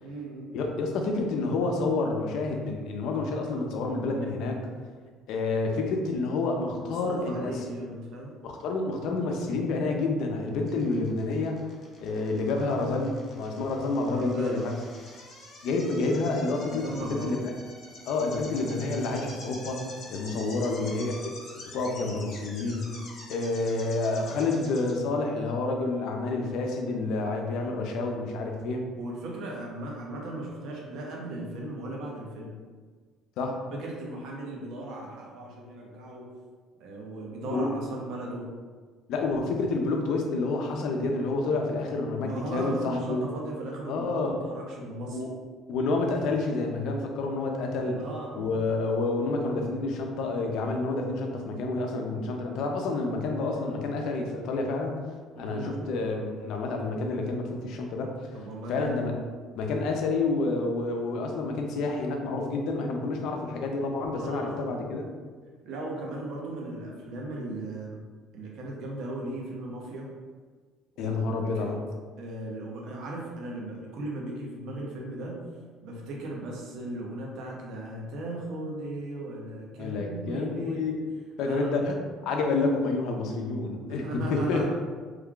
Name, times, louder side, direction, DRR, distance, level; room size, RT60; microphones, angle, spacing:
voice 1, 0.0-0.5 6.8-8.3 12.5-12.8 14.1-14.7 16.7-17.4 20.3-20.5 27.5-27.8 29.0-32.6 33.7-36.3 36.8-38.5 42.2-45.2 48.0-48.5 55.3-55.8 58.3-59.0 64.1-64.9 65.6-68.0 68.3-70.1 71.0-71.2 71.5-71.7 72.2-75.4 75.8-80.9 81.4-81.8 83.9-84.7, right 1 dB, 70° right, -2 dB, 0.8 m, -37 dB
voice 2, 0.5-4.6 5.3-7.6 8.4-11.6 12.0-14.7 15.6-17.4 18.1-21.3 21.7-22.9 23.3-28.9 33.4-33.6 37.5-37.7 39.1-43.2 43.9-44.4 45.1-45.3 45.7-48.0 48.3-55.0 55.4-58.1 58.7-59.1 59.5-65.1 71.0-71.8 79.7-81.0 81.4-82.0 82.2-84.6, left 3 dB, 70° left, 2 dB, 0.5 m, -29 dB
sound 1, 10.7-25.0, left 2 dB, 50° left, 0.9 m, -46 dB
3.2 x 2.3 x 3.7 m, 1.5 s
cardioid pair, 115°, 0 cm